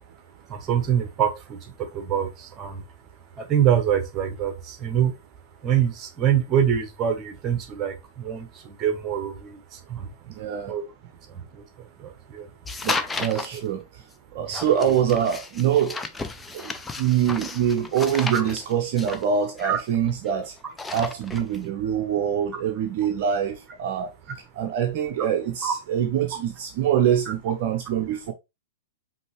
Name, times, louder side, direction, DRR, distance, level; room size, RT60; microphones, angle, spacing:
voice 1, 0.5-2.8 3.4-5.1 5.6-10.1 10.7-10.9 11.3-12.5 13.5-13.6 18.3-18.4 19.6-19.8 24.3-24.4 25.6-25.7, right 9 dB, 25° right, 1.0 m, -25 dB
voice 2, 10.4-10.7 12.8-13.8 14.3-16.0 16.5-20.5 20.9-24.1 24.6-28.3, right 9 dB, 45° right, 0.6 m, -24 dB
sound 1, 12.6-13.6 14.5-20.3 20.6-21.6, left 3 dB, 10° left, 0.5 m, -33 dB
5.2 x 2.8 x 3.2 m
figure-of-eight pair, 100°, 0 cm